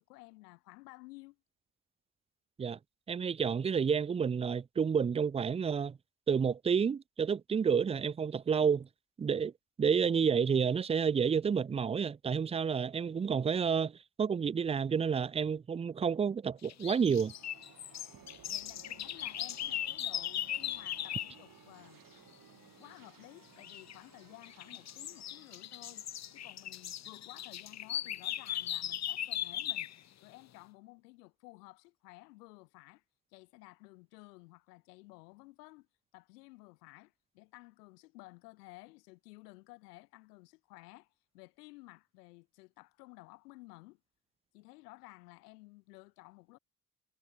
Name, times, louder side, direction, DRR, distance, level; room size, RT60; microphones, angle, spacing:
voice 1, 0.0-1.4 18.5-22.0 22.8-26.1 26.3-29.9 30.2-33.0 33.3-35.9 36.1-44.0 44.5-46.6, left 23 dB, 75° left, 4.6 m, -54 dB
voice 2, 3.1-6.0 6.3-8.9 9.2-9.5 9.8-17.3, right 6 dB, 15° right, 0.4 m, -30 dB
sound 1, 16.5-28.1, right 10 dB, 45° right, 2.1 m, -60 dB
sound 2, 16.6-21.4 23.6-24.0 24.4-30.0, left 11 dB, 35° left, 0.8 m, -38 dB
figure-of-eight pair, 50°, 48 cm